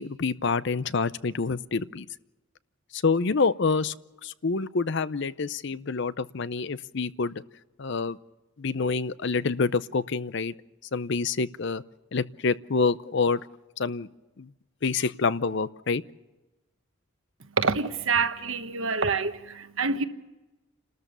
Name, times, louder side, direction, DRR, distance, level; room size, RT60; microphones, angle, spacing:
voice 1, 0.0-2.1 2.9-3.9 4.2-7.4 7.8-8.2 8.6-10.5 10.9-11.8 12.1-13.4 13.8-14.1 14.4-14.5 14.8-16.0, left 4 dB, 55° left, 0.6 m, -27 dB
voice 2, 17.6-20.0, right 4 dB, 65° right, 1.3 m, -26 dB
29.5 x 13.5 x 6.8 m
head